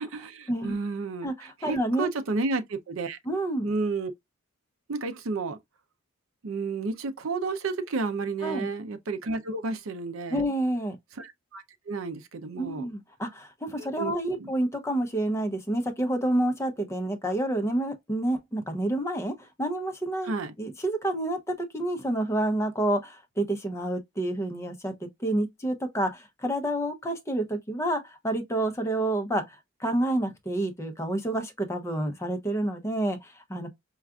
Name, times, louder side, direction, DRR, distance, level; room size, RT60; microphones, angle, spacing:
voice 1, 0.0-3.2 3.6-4.1 4.9-5.6 6.4-10.4 11.2-12.9 13.8-14.5 20.2-20.5, right 3 dB, 65° right, 0.5 m, -32 dB
voice 2, 1.2-2.1 3.3-3.7 8.4-8.7 10.3-11.0 12.6-20.3 20.6-33.7, right 1 dB, 15° left, 0.6 m, -29 dB
4.5 x 2.4 x 2.3 m
head